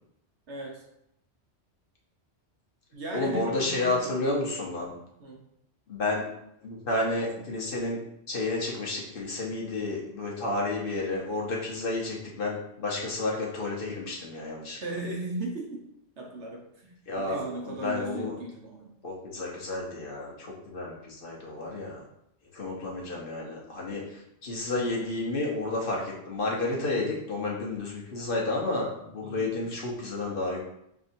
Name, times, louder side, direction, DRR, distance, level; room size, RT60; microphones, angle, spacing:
voice 1, 0.5-0.8 2.9-4.2 5.2-5.4 7.3-7.4 14.8-15.8 16.2-18.9 29.2-29.7, right 2 dB, 70° right, -1 dB, 1.3 m, -37 dB
voice 2, 3.1-4.9 5.9-6.2 6.6-8.0 8.3-14.8 17.1-18.4 19.0-22.0 22.5-30.6, left 2 dB, 50° left, -3 dB, 1.2 m, -31 dB
5.3 x 3.5 x 2.7 m, 0.78 s
omnidirectional pair, 1.2 m